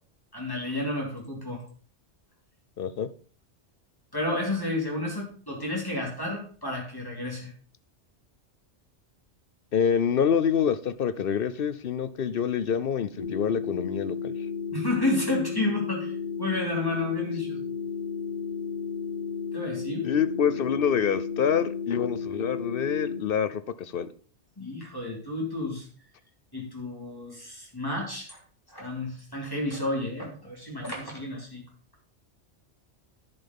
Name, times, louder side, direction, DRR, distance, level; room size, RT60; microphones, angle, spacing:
voice 1, 0.3-1.6 4.1-7.5 14.7-16.1 16.4-17.6 19.5-20.0 24.6-25.9 26.5-28.4 28.7-31.6, left 2 dB, 20° left, -2 dB, 3.3 m, -31 dB
voice 2, 2.8-3.1 9.7-14.3 20.0-24.1, left 7 dB, 60° left, 13 dB, 0.8 m, -26 dB
sound 1, 13.2-23.2, left 6 dB, 45° left, 3.9 m, -33 dB
10.5 x 5.8 x 5.4 m, 0.42 s
omnidirectional pair, 1.2 m